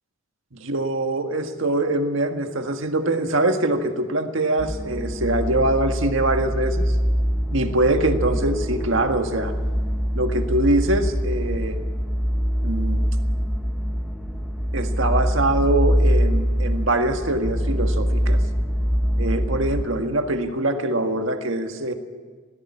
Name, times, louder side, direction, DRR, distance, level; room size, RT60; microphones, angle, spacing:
voice 1, 0.6-7.0 7.5-9.5 10.1-11.8 12.6-13.1 14.7-18.4 19.2-21.9, right 1 dB, 65° right, 6 dB, 1.8 m, -23 dB
sound 1, 4.6-19.9, equal, ahead, 1.2 m, -24 dB
19.0 x 16.0 x 9.8 m, 1.5 s
head